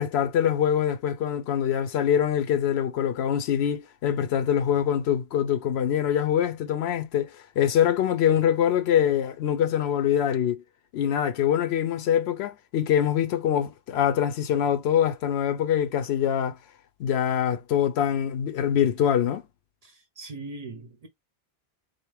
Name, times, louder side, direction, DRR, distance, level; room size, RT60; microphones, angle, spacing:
voice 1, 0.0-10.6 10.9-16.6 17.0-19.4, left 9 dB, 85° left, 0.8 m, -24 dB
voice 2, 19.8-21.1, right 3 dB, 50° right, 0.5 m, -40 dB
4.1 x 2.0 x 3.2 m
omnidirectional pair, 1.0 m